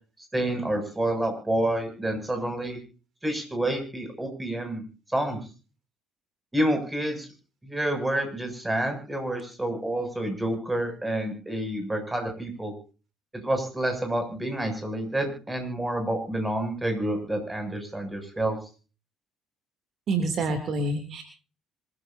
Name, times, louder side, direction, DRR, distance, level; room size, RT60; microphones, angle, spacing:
voice 1, 0.3-2.8 3.2-4.8 5.1-5.4 6.5-7.3 7.6-12.7 13.4-18.6, right 1 dB, 10° right, 5 dB, 7.5 m, -28 dB
voice 2, 20.1-21.2, right 2 dB, 50° right, 6 dB, 3.1 m, -27 dB
26.0 x 14.5 x 2.8 m, 0.37 s
figure-of-eight pair, 55°, 0 cm